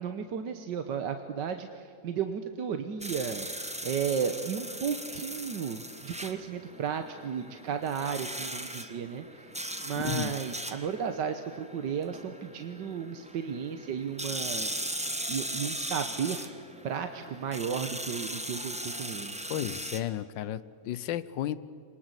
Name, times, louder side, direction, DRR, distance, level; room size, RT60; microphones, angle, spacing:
voice 1, 0.0-3.5 3.8-9.5 9.8-14.7 15.3-16.6 16.8-19.3, right 7 dB, 75° right, 7 dB, 1.7 m, -34 dB
sound 1, 3.0-20.0, right 1 dB, 5° right, 1.2 m, -39 dB
voice 2, 9.9-10.3 19.5-21.6, left 12 dB, 90° left, 16 dB, 1.5 m, -33 dB
26.0 x 20.0 x 8.1 m, 2.4 s
omnidirectional pair, 1.9 m